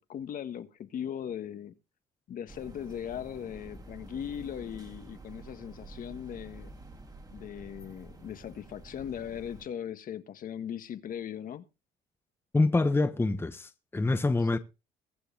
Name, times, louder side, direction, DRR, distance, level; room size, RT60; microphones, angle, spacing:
voice 1, 0.0-1.7 2.3-6.7 7.3-11.6 14.5-14.6, left 9 dB, 55° left, 1.6 m, -39 dB
sound 1, 2.5-9.7, right 2 dB, 20° right, 2.6 m, -49 dB
voice 2, 12.5-14.6, left 3 dB, 15° left, 1.0 m, -26 dB
22.5 x 7.8 x 3.5 m
cardioid pair, 110°, 17 cm